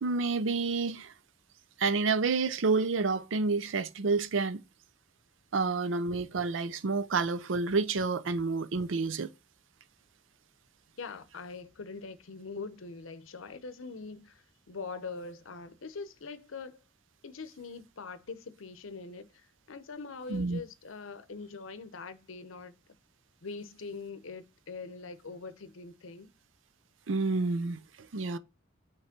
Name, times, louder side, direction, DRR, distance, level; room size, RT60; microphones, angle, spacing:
voice 1, 0.0-1.1 1.8-4.6 5.5-9.3 20.3-20.6 27.1-27.8 28.1-28.4, right 4 dB, 75° right, 0.6 m, -29 dB
voice 2, 11.0-16.8 17.2-22.7 23.4-26.3, left 4 dB, 85° left, 0.8 m, -43 dB
5.9 x 3.2 x 5.8 m
head